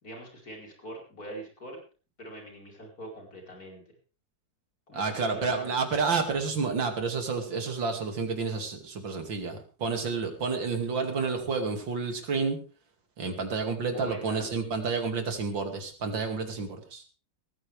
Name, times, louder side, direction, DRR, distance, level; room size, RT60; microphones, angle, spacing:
voice 1, 0.0-1.8 2.2-3.8 4.9-5.8 13.9-14.5, equal, 50° left, 0 dB, 5.4 m, -43 dB
voice 2, 4.9-12.6 13.2-17.0, right 4 dB, 80° right, 5 dB, 3.2 m, -30 dB
18.5 x 14.5 x 3.5 m, 0.35 s
omnidirectional pair, 2.0 m